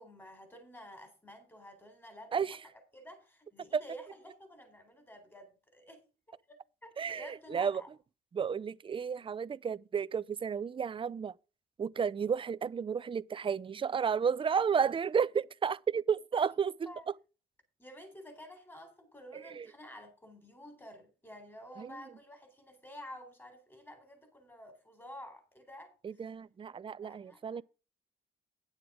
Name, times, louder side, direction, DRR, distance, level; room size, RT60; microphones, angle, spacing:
voice 1, 0.0-2.6 2.9-6.0 6.3-6.6 6.8-7.9 16.3-16.5 16.8-17.1 17.8-26.2 27.0-27.6, equal, 10° left, 3.9 m, -51 dB
voice 2, 7.0-7.8 8.3-11.3 11.8-16.7 19.3-19.7 21.8-21.9 26.0-27.6, right 6 dB, 25° right, 0.4 m, -32 dB
9.8 x 7.6 x 5.0 m
cardioid pair, 90°, 20 cm